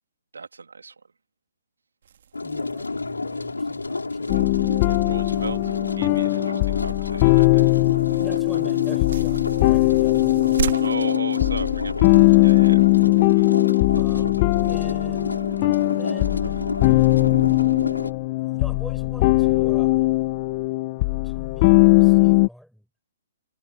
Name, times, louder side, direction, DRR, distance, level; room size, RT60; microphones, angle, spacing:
voice 1, 0.3-0.9 4.9-7.7 10.8-12.9 13.3-13.5, right 4 dB, 80° right, 2.9 m, -36 dB
sound 1, 2.0-12.1, right 9 dB, 60° right, 2.3 m, -38 dB
sound 2, 2.3-18.1, left 3 dB, 90° left, 5.0 m, -30 dB
voice 2, 2.4-4.6 8.2-10.8 13.9-15.5 15.8-16.6 18.5-20.1 21.2-22.9, equal, ahead, 6.2 m, -44 dB
sound 3, 4.3-22.5, left 24 dB, 35° left, 1.5 m, -19 dB
figure-of-eight pair, 130°, 0 cm